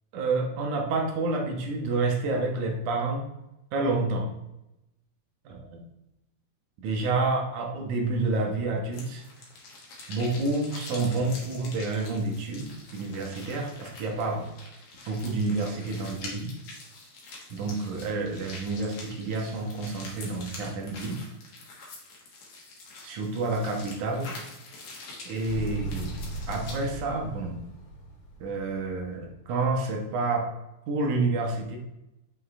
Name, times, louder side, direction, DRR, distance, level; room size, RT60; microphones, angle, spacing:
voice 1, 0.1-3.3 3.7-4.3 5.5-5.8 6.8-9.2 10.1-14.5 15.1-16.5 17.5-21.2 23.0-24.3 25.3-26.2 26.5-27.6 28.4-30.5 30.9-31.8, right 3 dB, 80° right, 1 dB, 2.7 m, -29 dB
sound 1, 8.9-26.9, left 3 dB, 75° left, 3.0 m, -45 dB
Motorcycle, 25.5-29.4, right 2 dB, 50° left, 1.9 m, -38 dB
7.5 x 6.0 x 3.2 m, 0.89 s
omnidirectional pair, 3.4 m